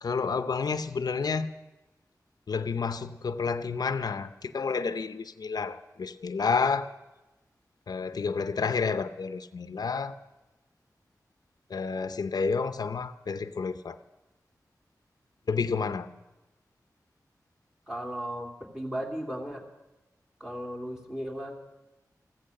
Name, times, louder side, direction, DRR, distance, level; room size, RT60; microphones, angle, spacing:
voice 1, 0.0-1.5 2.5-6.9 7.9-10.2 11.7-14.0 15.5-16.2, left 5 dB, 80° left, 0.6 m, -30 dB
voice 2, 17.9-19.6 20.4-21.5, equal, 10° right, 2.9 m, -36 dB
15.0 x 14.5 x 6.5 m
wide cardioid pair, 75°, 7 cm